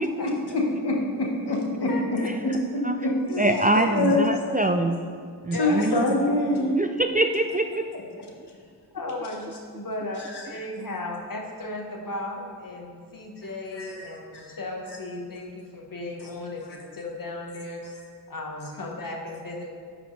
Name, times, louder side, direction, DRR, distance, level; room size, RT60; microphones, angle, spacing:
voice 1, 0.0-2.2 2.7-3.1 3.9-4.3 5.6-6.7 10.2-10.4 13.7-14.0 14.3-14.6, left 2 dB, 70° left, -1 dB, 1.4 m, -25 dB
voice 2, 1.9-2.3 3.3-4.0 5.5-5.9 7.9-8.3 8.9-17.9 18.3-19.7, left 2 dB, 55° left, 1 dB, 1.2 m, -35 dB
voice 3, 3.4-5.0 5.4-6.0 6.7-7.8, right 2 dB, 20° right, 5 dB, 0.4 m, -24 dB
11.0 x 5.1 x 3.2 m, 2.1 s
cardioid pair, 45°, 41 cm